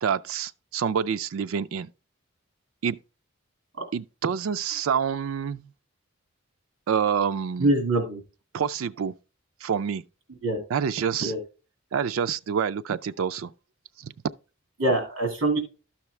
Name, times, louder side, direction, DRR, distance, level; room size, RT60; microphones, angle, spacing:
voice 1, 0.0-1.9 2.8-3.0 3.9-5.6 6.9-7.7 8.5-9.1 9.6-10.0 10.7-11.3 11.9-13.5 14.0-14.1, right 7 dB, 80° right, 0.4 m, -27 dB
voice 2, 7.6-8.2 10.4-10.6 11.2-11.4 14.8-15.6, right 2 dB, 65° right, 2.0 m, -24 dB
12.5 x 5.9 x 3.2 m
head